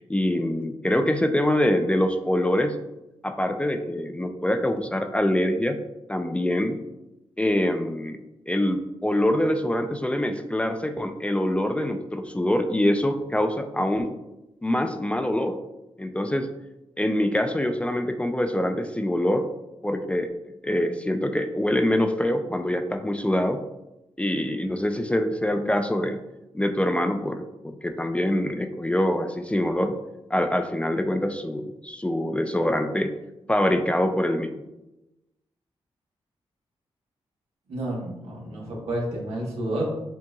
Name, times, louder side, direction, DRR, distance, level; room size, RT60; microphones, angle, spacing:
voice 1, 0.1-2.8 3.2-5.8 6.1-6.8 7.4-8.2 8.5-14.1 14.6-15.6 16.0-16.5 17.0-19.5 19.8-20.3 20.6-23.6 24.2-26.2 26.5-30.0 30.3-33.1 33.5-34.5, left 1 dB, 10° left, 7 dB, 0.4 m, -24 dB
voice 2, 37.7-39.9, right 1 dB, 85° right, -3 dB, 1.3 m, -30 dB
7.3 x 2.7 x 2.3 m, 0.94 s
cardioid pair, 80°, 10 cm